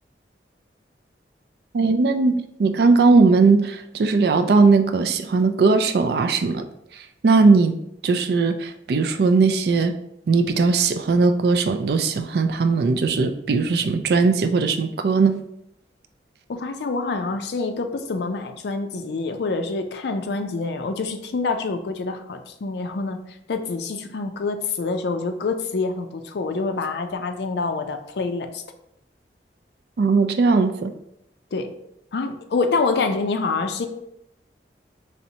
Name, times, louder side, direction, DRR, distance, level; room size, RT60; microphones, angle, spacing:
voice 1, 1.7-6.7 7.2-7.7 8.0-9.9 10.3-15.3 30.0-30.9, right 4 dB, 60° right, 8 dB, 0.3 m, -19 dB
voice 2, 16.5-23.2 23.5-28.6 31.5-31.7 32.1-33.9, left 3 dB, 70° left, 6 dB, 0.4 m, -26 dB
4.1 x 3.3 x 2.8 m, 0.80 s
head